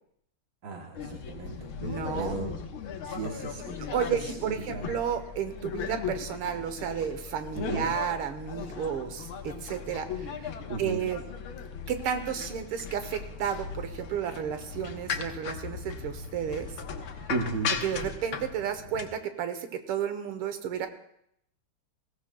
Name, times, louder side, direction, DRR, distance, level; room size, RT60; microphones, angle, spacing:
voice 1, 0.6-1.7 2.2-2.6 3.0-3.9 4.2-4.9 7.6-7.9 10.7-11.0 17.3-17.7, right 3 dB, 50° right, 1 dB, 1.3 m, -35 dB
sound 1, 0.9-19.1, left 6 dB, 70° left, 1.8 m, -38 dB
voice 2, 1.8-2.4 3.8-10.4 10.8-11.2 11.9-16.7 17.8-20.9, right 8 dB, 80° right, 8 dB, 1.9 m, -32 dB
20.5 x 16.5 x 2.3 m, 0.74 s
omnidirectional pair, 2.4 m